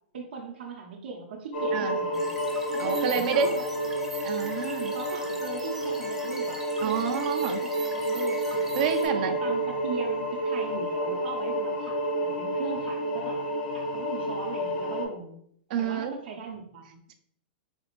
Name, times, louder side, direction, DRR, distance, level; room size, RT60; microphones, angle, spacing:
voice 1, 0.1-2.3 2.7-3.6 4.9-7.5 7.9-8.8 9.0-13.4 13.7-15.4 15.8-17.0, right 5 dB, 80° right, -2 dB, 0.7 m, -39 dB
sound 1, 1.5-15.1, right 1 dB, 75° left, 1.2 m, -30 dB
sound 2, 2.1-9.1, right 3 dB, 5° right, 0.6 m, -43 dB
voice 2, 2.8-3.5 4.2-4.9 6.8-7.6 8.7-9.4 15.7-16.1, right 7 dB, 55° right, 6 dB, 0.4 m, -28 dB
4.2 x 2.4 x 3.0 m, 0.68 s
hypercardioid pair, 135°, 5 cm